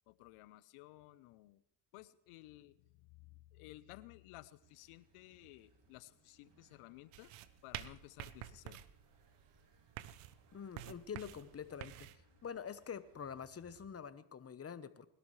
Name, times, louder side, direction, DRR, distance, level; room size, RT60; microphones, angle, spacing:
voice 1, 0.1-1.6 1.9-7.3 7.6-8.8, left 18 dB, 80° left, 17 dB, 0.8 m, -56 dB
sound 1, 4.6-13.9, right 2 dB, 55° right, 3.2 m, -70 dB
sound 2, 7.1-12.2, right 14 dB, 80° right, 0.8 m, -49 dB
voice 2, 10.5-12.1 12.4-15.1, left 7 dB, 30° left, 13 dB, 1.0 m, -46 dB
21.0 x 12.0 x 3.2 m, 0.75 s
supercardioid pair, 70°, 50 cm